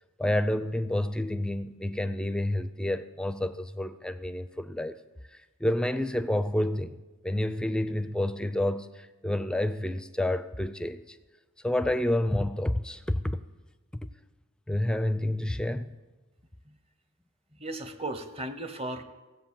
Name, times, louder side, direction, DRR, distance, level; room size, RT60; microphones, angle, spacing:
voice 1, 0.2-5.0 5.3-11.2 11.6-13.4 14.7-15.9, left 1 dB, 5° left, 0.4 m, -29 dB
voice 2, 17.6-19.0, right 1 dB, 25° right, 0.9 m, -36 dB
16.0 x 7.9 x 7.4 m
head